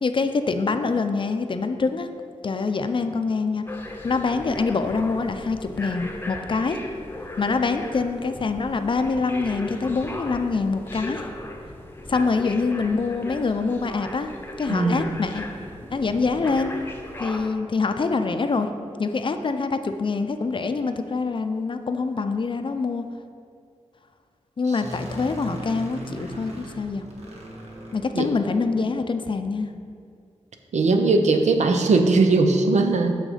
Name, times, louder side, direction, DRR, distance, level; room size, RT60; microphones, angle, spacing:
voice 1, 0.0-2.1 2.4-3.6 4.0-6.8 7.4-11.2 12.1-14.3 14.6-15.5 15.9-16.7 17.2-18.7 19.0-23.0 24.6-27.0 27.9-29.7, left 4 dB, 45° left, 8 dB, 0.5 m, -25 dB
sound 1, 3.7-17.5, left 1 dB, 20° left, 0.8 m, -37 dB
voice 2, 14.7-15.1 28.1-28.3 30.7-33.1, right 3 dB, 80° right, 5 dB, 0.7 m, -19 dB
sound 2, 24.8-28.7, right 1 dB, 65° right, 1.4 m, -38 dB
6.4 x 6.3 x 5.0 m, 2.2 s
wide cardioid pair, 85°, 12 cm